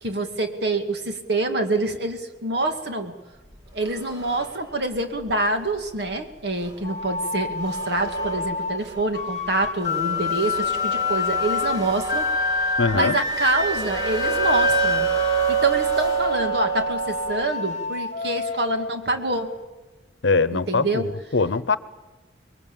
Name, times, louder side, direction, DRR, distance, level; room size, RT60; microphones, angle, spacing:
voice 1, 0.0-3.1 3.7-12.3 12.9-15.1 15.5-19.5 20.5-21.1, right 2 dB, 60° right, 5 dB, 2.4 m, -26 dB
sound 1, 3.5-5.3 5.8-5.9 6.6-6.8 7.2-7.3 7.5-9.2 9.6-17.5, right 6 dB, 20° right, 2.3 m, -28 dB
sound 2, 6.8-19.6, left 4 dB, 40° left, 0.9 m, -28 dB
voice 2, 12.8-13.2 20.2-21.8, left 4 dB, 80° left, 16 dB, 0.9 m, -22 dB
26.0 x 22.0 x 7.2 m, 1.2 s
head